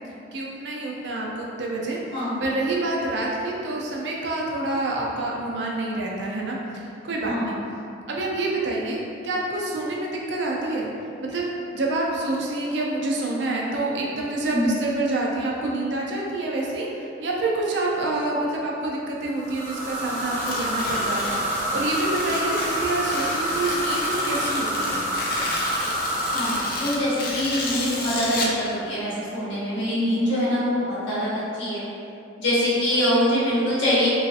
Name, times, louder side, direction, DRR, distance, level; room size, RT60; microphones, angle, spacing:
voice 1, 0.3-7.6 8.1-10.9 11.2-21.4 21.7-25.0, right 2 dB, 65° right, -3 dB, 0.5 m, -27 dB
voice 2, 2.1-2.4 7.3-7.6 14.5-14.8 26.3-31.3 31.6-31.8 32.4-34.1, equal, 80° left, -10 dB, 1.1 m, -24 dB
sound 1, 19.4-27.9, equal, 10° right, 0.6 m, -28 dB
Tearing, 20.3-28.6, left 2 dB, 50° left, 0.4 m, -32 dB
3.1 x 2.7 x 2.4 m, 2.7 s
head